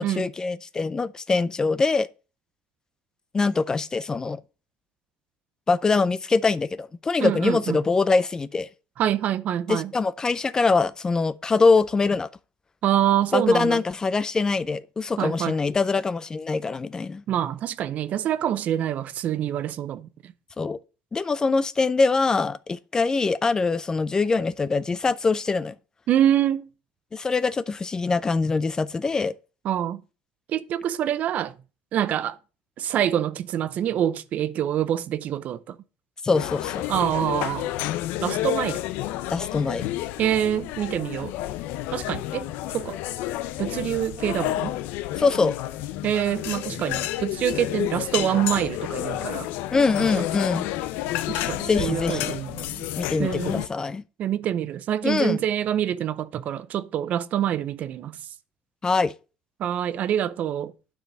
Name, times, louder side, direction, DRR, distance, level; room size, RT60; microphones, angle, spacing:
voice 1, 0.0-2.1 3.3-4.4 5.7-8.7 9.7-12.3 13.3-17.2 20.6-20.8 21.1-25.7 27.1-29.3 36.2-36.9 39.3-39.9 45.2-45.5 49.7-50.7 51.7-52.4 53.0-54.0 55.0-55.4 58.8-59.1, left 4 dB, 20° left, 0.4 m, -23 dB
voice 2, 7.2-7.8 9.0-9.9 12.8-13.8 15.2-15.6 17.3-20.3 26.1-26.7 29.6-30.0 30.5-31.5 31.9-32.4 32.8-35.8 36.9-37.7 38.2-38.8 40.2-41.3 41.9-42.5 42.7-43.0 43.6-44.7 46.0-49.5 50.0-50.2 51.3-52.9 53.2-53.6 54.2-58.2 59.6-60.7, right 10 dB, 50° right, 0.6 m, -26 dB
sound 1, 36.3-53.7, left 14 dB, 80° left, 0.6 m, -30 dB
9.1 x 5.1 x 5.2 m
cardioid pair, 120°, 3 cm